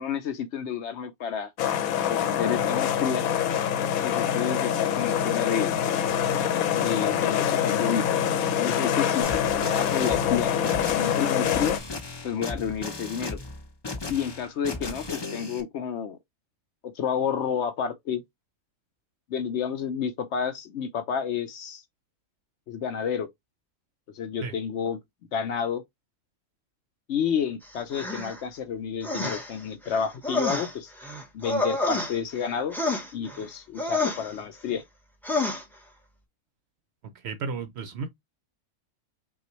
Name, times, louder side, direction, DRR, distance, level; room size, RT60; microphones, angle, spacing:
voice 1, 0.0-1.5 2.1-3.3 4.0-5.8 6.7-8.0 8.6-10.5 10.9-11.8 12.2-13.4 14.1-16.2 16.8-18.2 19.3-21.8 22.7-23.3 24.1-25.0 25.3-25.8 27.1-30.9 31.3-32.8 33.1-34.8, left 7 dB, 65° left, 0.7 m, -30 dB
sound 1, 1.6-11.8, left 9 dB, 85° left, 1.1 m, -25 dB
sound 2, 9.2-15.6, left 3 dB, 40° left, 0.4 m, -36 dB
sound 3, 27.9-28.4 29.0-29.6 29.9-32.4 32.7-33.4 33.8-34.3 35.2-35.6, left 2 dB, ahead, 0.7 m, -29 dB
voice 2, 37.2-38.1, right 5 dB, 65° right, 0.7 m, -33 dB
5.5 x 2.4 x 3.0 m
omnidirectional pair, 1.5 m